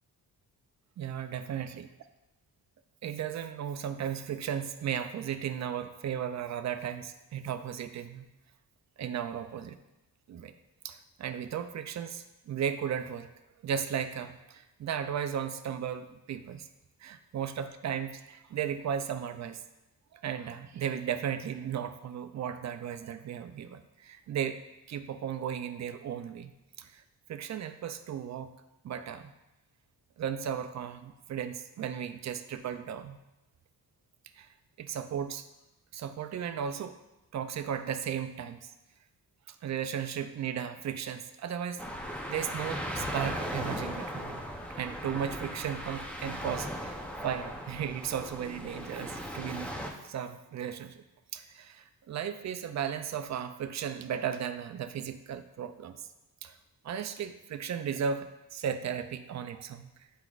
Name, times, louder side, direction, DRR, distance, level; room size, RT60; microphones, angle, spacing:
voice 1, 1.0-1.9 3.0-8.3 9.0-9.8 10.3-10.5 10.8-13.3 13.6-16.7 17.0-19.6 20.1-24.6 24.9-26.5 26.8-27.0 27.3-28.5 28.8-29.3 30.2-33.2 34.4-34.5 34.8-35.5 35.9-36.9 37.3-38.7 39.5-41.8 42.3-44.4 44.8-49.7 50.0-51.0 51.3-56.1 56.4-56.6 56.8-59.9, right 8 dB, 45° right, 10 dB, 0.5 m, -35 dB
sound 1, 41.8-49.9, equal, 5° left, 0.6 m, -37 dB
7.8 x 5.1 x 2.4 m, 0.96 s
cardioid pair, 110°, 38 cm